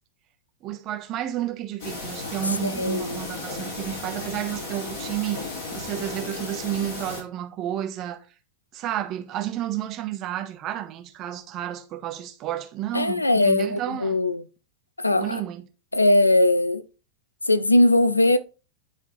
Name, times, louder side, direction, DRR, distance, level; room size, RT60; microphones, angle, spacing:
voice 1, 0.6-5.4 5.7-8.2 8.7-14.2 15.1-15.6, right 12 dB, 35° right, 1.0 m, -31 dB
sound 1, 1.8-7.2, left 3 dB, 50° left, 3.9 m, -35 dB
voice 2, 2.6-3.2 12.9-14.4 15.0-15.4 15.9-16.8 17.5-18.4, left 2 dB, 85° left, 0.4 m, -20 dB
10.5 x 3.5 x 3.0 m
figure-of-eight pair, 90°, 0 cm